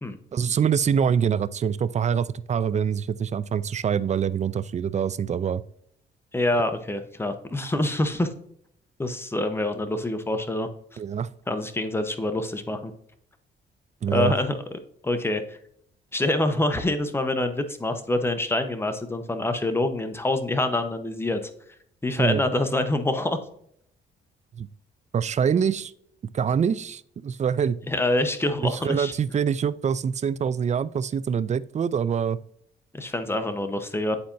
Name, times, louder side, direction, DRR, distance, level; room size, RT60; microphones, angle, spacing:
voice 1, 0.3-5.6 11.0-11.3 14.0-14.3 22.2-22.4 24.5-24.7 25.1-25.9 26.3-27.8 28.6-32.4, right 7 dB, 35° right, 17 dB, 0.4 m, -25 dB
voice 2, 6.3-8.3 9.0-11.0 11.5-12.9 14.1-15.6 16.1-21.5 22.0-23.4 27.9-29.1 32.9-34.2, left 1 dB, 10° left, 8 dB, 1.0 m, -26 dB
9.6 x 4.2 x 2.7 m, 0.68 s
cardioid pair, 90°, 20 cm